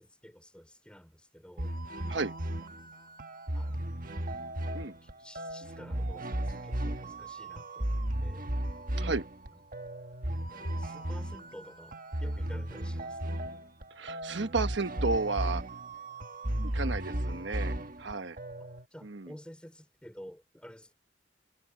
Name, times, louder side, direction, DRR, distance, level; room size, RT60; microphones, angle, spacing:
voice 1, 0.0-1.8 3.5-3.8 4.7-8.5 10.5-13.5 18.9-20.9, equal, 5° left, 5.5 m, -51 dB
sound 1, 1.6-18.9, right 1 dB, 45° right, 1.4 m, -35 dB
voice 2, 14.0-15.6 16.6-18.4 19.0-19.3, right 3 dB, 70° right, 1.2 m, -33 dB
head